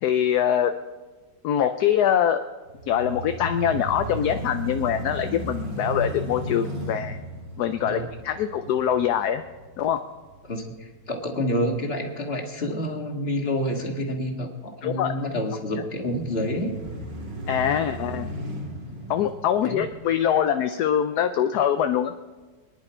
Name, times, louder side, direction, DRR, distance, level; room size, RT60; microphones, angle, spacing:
voice 1, 0.0-0.7 1.4-2.4 2.9-7.2 7.6-9.4 9.8-10.0 14.8-15.1 17.5-18.3 19.1-22.1, left 9 dB, 70° left, 8 dB, 1.1 m, -23 dB
sound 1, 2.7-10.8 11.3-11.4 15.9-20.4, right 1 dB, 75° right, 3.1 m, -35 dB
voice 2, 10.4-16.7 19.6-19.8, left 1 dB, 35° left, 1 dB, 2.0 m, -28 dB
24.0 x 10.5 x 4.4 m, 1.3 s
omnidirectional pair, 1.9 m